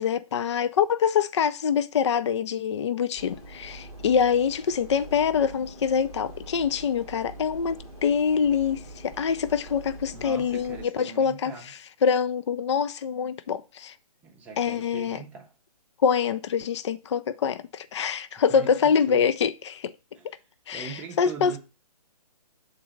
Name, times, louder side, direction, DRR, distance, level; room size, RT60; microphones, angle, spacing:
voice 1, 0.0-11.5 12.0-13.9 14.6-15.2 16.0-19.9 20.7-21.6, left 7 dB, 45° left, 0.4 m, -25 dB
sound 1, 3.1-10.9, right 1 dB, 15° left, 1.2 m, -44 dB
voice 2, 10.1-11.7 14.2-15.5 18.4-19.3 20.1-20.3 20.7-21.6, right 5 dB, 5° right, 0.7 m, -41 dB
6.8 x 3.9 x 5.0 m
hypercardioid pair, 160°, 21 cm